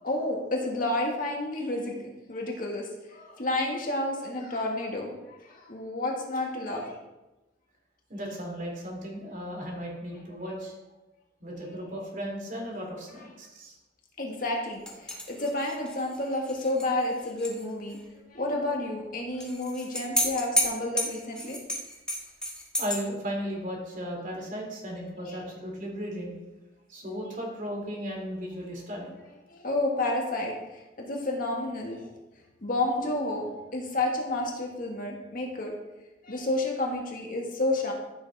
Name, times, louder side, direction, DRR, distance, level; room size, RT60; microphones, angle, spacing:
voice 1, 0.0-5.1 5.5-7.0 14.2-18.0 18.3-21.6 25.3-25.4 29.5-30.5 31.0-32.1 32.6-35.7 36.2-37.9, left 2 dB, 50° left, -1 dB, 1.9 m, -30 dB
voice 2, 8.1-10.8 11.4-13.8 22.8-26.3 26.9-29.1, equal, 45° right, -1 dB, 3.4 m, -36 dB
sound 1, 14.9-17.6 17.9-18.0 19.4-23.0, left 1 dB, 5° left, 1.7 m, -32 dB
14.5 x 7.2 x 3.6 m, 1.0 s
head